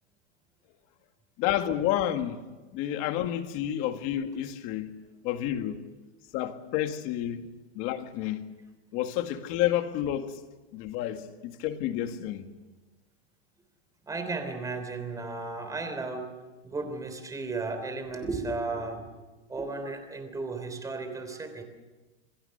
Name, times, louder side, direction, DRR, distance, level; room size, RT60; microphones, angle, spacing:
voice 1, 1.4-2.4 2.7-4.9 5.2-5.8 6.3-7.5 7.8-8.4 8.9-10.4 10.7-12.5, left 11 dB, 40° left, 1.9 m, -30 dB
voice 2, 14.1-16.3 16.6-21.6, right 3 dB, 10° right, 3.4 m, -34 dB
27.5 x 21.0 x 6.7 m
supercardioid pair, 160°, 33 cm